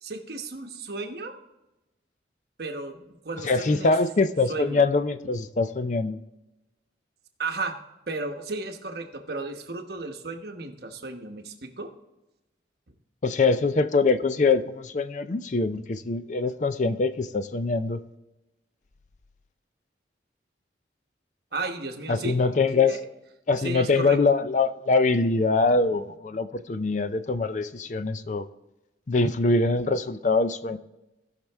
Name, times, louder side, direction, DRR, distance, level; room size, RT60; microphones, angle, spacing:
voice 1, 0.0-1.3 2.6-3.9 4.5-4.8 7.4-7.8 8.1-11.9 21.5-22.4 22.7-23.0 23.6-24.2, right 3 dB, 60° right, 4 dB, 1.1 m, -34 dB
voice 2, 3.4-6.2 13.2-18.0 22.1-23.0 23.5-28.5 29.1-30.8, left 3 dB, 45° left, 12 dB, 0.5 m, -23 dB
17.0 x 5.8 x 3.5 m, 0.98 s
head